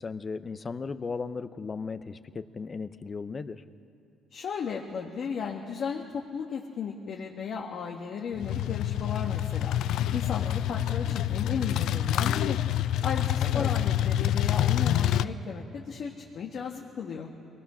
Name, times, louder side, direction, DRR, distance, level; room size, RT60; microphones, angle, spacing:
voice 1, 0.0-3.6 13.4-13.7, left 4 dB, 30° left, 12 dB, 0.8 m, -36 dB
voice 2, 4.3-9.8 10.1-12.6 13.0-17.3, left 6 dB, 55° left, 0 dB, 1.6 m, -35 dB
sound 1, 8.3-15.2, left 12 dB, 75° left, 0.5 m, -27 dB
23.0 x 19.0 x 6.3 m, 2.7 s
cardioid pair, 105°, 0 cm